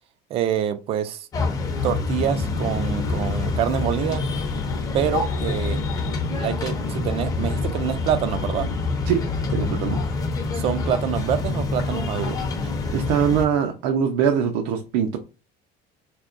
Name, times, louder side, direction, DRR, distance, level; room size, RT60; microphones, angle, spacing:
voice 1, 0.3-1.3 1.8-4.2 4.9-5.8 6.3-8.7 10.5-12.4, right 9 dB, 30° right, 0.4 m, -26 dB
sound 1, 1.3-13.4, left 3 dB, 20° left, 0.6 m, -26 dB
sound 2, 2.8-6.2, left 7 dB, 65° left, 0.7 m, -38 dB
voice 2, 9.5-10.0 12.6-15.2, right 8 dB, 80° right, 0.6 m, -23 dB
4.7 x 2.9 x 2.5 m
cardioid pair, 175°, 19 cm